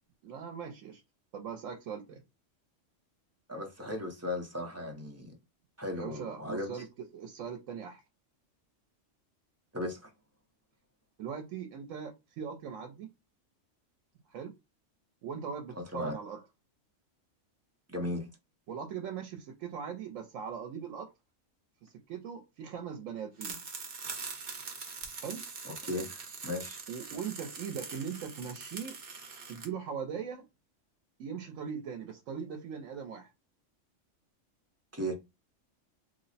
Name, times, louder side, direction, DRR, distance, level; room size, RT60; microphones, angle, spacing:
voice 1, 0.2-1.0 1.3-2.2 5.9-6.9 7.1-8.0 11.2-13.1 14.3-14.5 15.2-16.4 18.7-21.1 21.8-23.6 25.2-25.4 26.9-29.0 29.5-30.5 31.2-33.3, right 7 dB, 85° right, 1.0 m, -40 dB
voice 2, 3.5-5.4 5.8-6.8 9.7-10.1 15.8-16.2 17.9-18.3 25.6-26.8 34.9-35.2, left 1 dB, 15° right, 0.5 m, -36 dB
sound 1, 23.4-29.7, right 5 dB, 50° right, 0.9 m, -43 dB
3.2 x 2.0 x 4.0 m
omnidirectional pair, 1.3 m